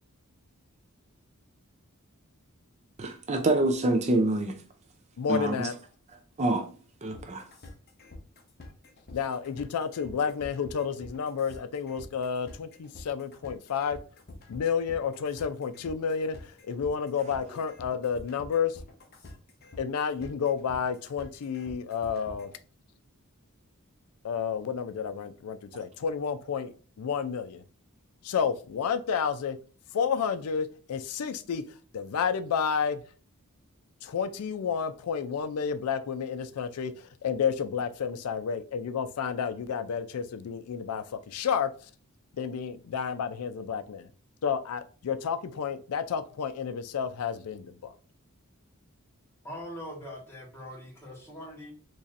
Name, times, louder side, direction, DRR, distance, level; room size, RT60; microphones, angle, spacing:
voice 1, 3.0-4.6 5.3-5.7 6.4-6.6 7.0-7.4, right 2 dB, 30° right, 0.4 m, -26 dB
voice 2, 5.2-5.7 9.1-14.0 14.5-18.8 19.8-22.5 24.2-27.6 28.2-29.6 29.9-31.6 31.9-33.0 34.0-41.7 42.3-44.1 44.4-47.9, left 6 dB, 85° left, 0.4 m, -31 dB
sound 1, 7.1-22.6, left 2 dB, 45° left, 0.8 m, -47 dB
voice 3, 49.4-51.7, equal, 10° left, 1.4 m, -42 dB
4.1 x 3.0 x 2.5 m
head